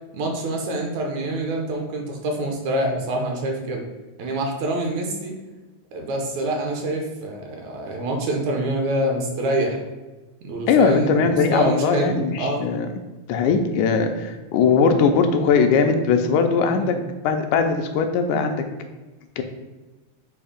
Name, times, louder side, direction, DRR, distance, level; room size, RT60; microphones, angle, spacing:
voice 1, 0.1-3.8 4.2-5.3 5.9-9.8 10.4-12.6 16.7-17.0, right 1 dB, 70° right, 1 dB, 2.1 m, -26 dB
voice 2, 10.7-12.9 13.3-17.0 17.2-18.6 19.4-19.5, left 5 dB, 80° left, 5 dB, 2.0 m, -20 dB
7.1 x 2.7 x 5.0 m, 1.2 s
omnidirectional pair, 3.6 m